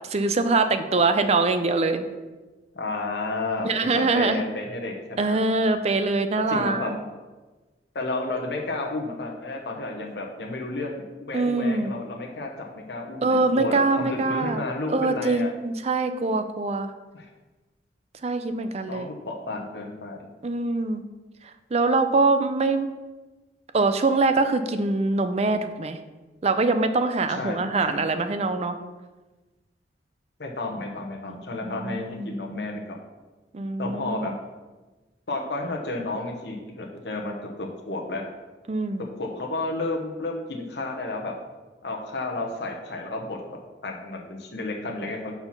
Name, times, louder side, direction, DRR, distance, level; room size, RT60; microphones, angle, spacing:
voice 1, 0.1-2.1 3.6-4.4 5.2-7.0 11.3-11.9 13.2-14.6 14.9-16.9 18.2-19.1 20.4-21.0 21.7-22.9 23.7-26.0 26.4-28.8 31.3-32.3 33.5-34.4 38.7-39.1, right 3 dB, 35° right, 9 dB, 0.5 m, -23 dB
voice 2, 2.7-5.4 6.5-6.9 7.9-15.5 17.1-17.3 18.9-20.3 27.3-28.0 30.4-33.0 33.8-34.3 35.3-38.2 39.0-41.3 41.8-43.4 43.8-45.3, left 2 dB, 70° left, 1 dB, 1.0 m, -32 dB
5.7 x 4.5 x 5.8 m, 1.2 s
head